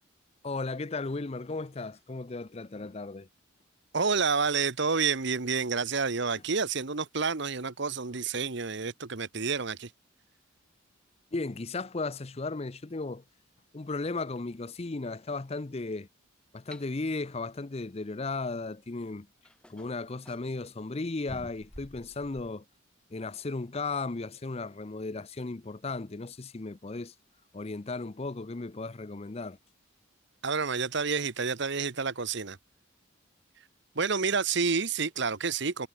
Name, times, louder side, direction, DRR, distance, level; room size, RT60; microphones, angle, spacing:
voice 1, 0.4-3.3 11.3-13.2 13.7-16.1 16.5-19.3 19.7-22.6 23.1-27.1 27.5-29.6, left 3 dB, 30° left, 0.6 m, -35 dB
voice 2, 3.9-9.9 30.4-32.6 34.0-35.9, right 5 dB, 60° right, 1.1 m, -29 dB
sound 1, 16.7-16.9 18.7-18.8 19.4-20.5 21.3-22.6, equal, 5° left, 1.1 m, -49 dB
head